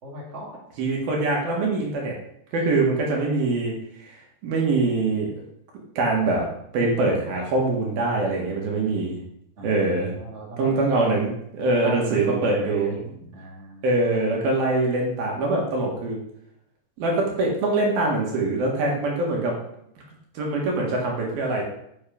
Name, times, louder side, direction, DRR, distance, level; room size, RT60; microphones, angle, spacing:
voice 1, 0.0-0.6 9.6-10.9 11.8-13.9, right 2 dB, 25° right, -3 dB, 1.5 m, -36 dB
voice 2, 0.8-2.1 2.5-3.7 4.0-5.4 6.0-6.5 6.7-9.2 9.6-10.1 10.6-13.0 13.8-16.2 17.0-19.5 20.3-21.6, right 2 dB, 65° right, -1 dB, 3.3 m, -23 dB
8.2 x 6.6 x 5.2 m, 0.76 s
omnidirectional pair, 5.0 m